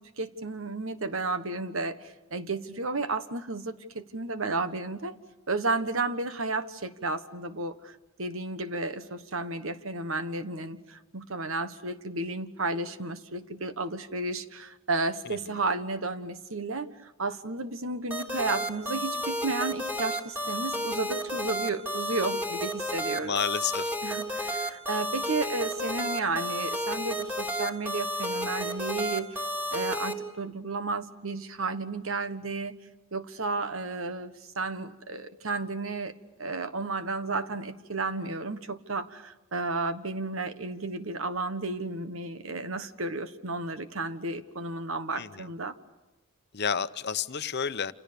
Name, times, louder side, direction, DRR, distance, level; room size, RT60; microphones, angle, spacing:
voice 1, 0.0-5.2 5.5-23.4 24.0-29.4 29.7-32.8 33.1-36.1 36.4-45.7, right 3 dB, 65° right, 11 dB, 1.5 m, -32 dB
sound 1, 18.1-30.1, equal, 10° right, 3.5 m, -32 dB
voice 2, 23.2-23.9 45.2-45.5 46.5-47.9, left 7 dB, 50° left, 12 dB, 0.9 m, -30 dB
29.0 x 28.5 x 6.9 m, 1.0 s
head